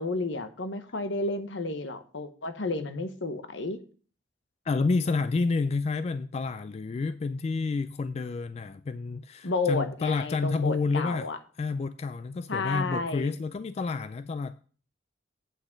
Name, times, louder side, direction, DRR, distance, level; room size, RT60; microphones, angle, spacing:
voice 1, 0.0-3.8 9.4-11.4 12.5-13.4, left 3 dB, 70° left, 1.0 m, -31 dB
voice 2, 4.6-11.3 11.6-14.6, left 4 dB, 35° left, 0.3 m, -29 dB
8.4 x 6.0 x 5.1 m
head